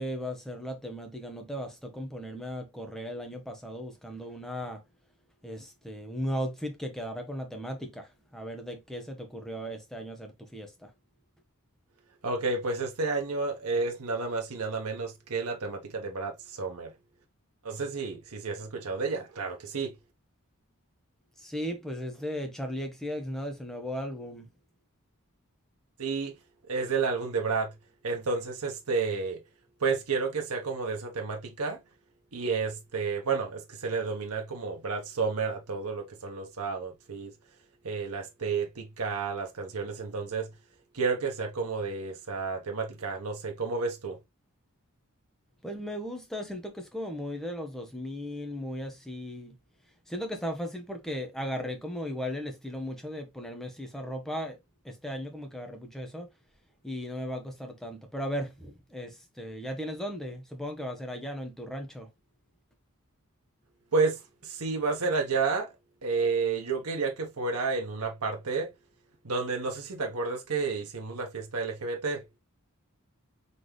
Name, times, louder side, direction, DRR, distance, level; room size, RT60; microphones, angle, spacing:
voice 1, 0.0-4.8 5.4-10.9 21.4-24.5 45.6-49.6 50.1-54.6 54.8-56.3 56.8-62.1, equal, ahead, 1.1 m, -36 dB
voice 2, 12.2-16.9 17.6-19.9 26.0-26.3 26.7-27.7 28.0-29.4 29.8-31.8 32.3-37.3 37.8-40.5 40.9-44.2 63.9-65.7 66.0-68.7 69.2-72.2, right 4 dB, 85° right, 1.0 m, -31 dB
4.1 x 3.5 x 3.1 m
head